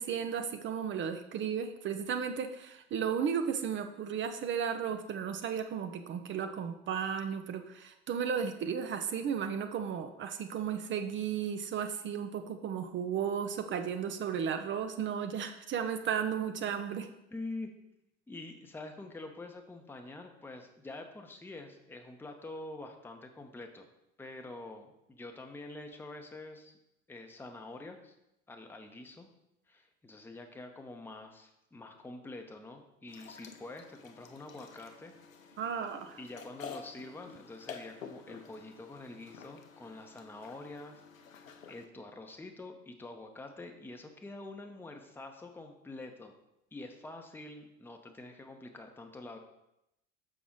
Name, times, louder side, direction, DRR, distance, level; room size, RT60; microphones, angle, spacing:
voice 1, 0.0-17.1 35.6-36.2, right 7 dB, 30° right, 8 dB, 0.6 m, -34 dB
voice 2, 17.3-17.7 18.3-23.9 24.2-26.7 27.1-28.1 28.5-29.3 29.7-35.1 35.4-35.6 36.2-41.0 41.3-46.3 46.7-49.4, left 2 dB, 5° left, 4 dB, 0.8 m, -46 dB
sound 1, 33.1-41.8, left 6 dB, 85° left, 0.7 m, -50 dB
6.0 x 5.9 x 3.8 m, 0.86 s
figure-of-eight pair, 70°, 39 cm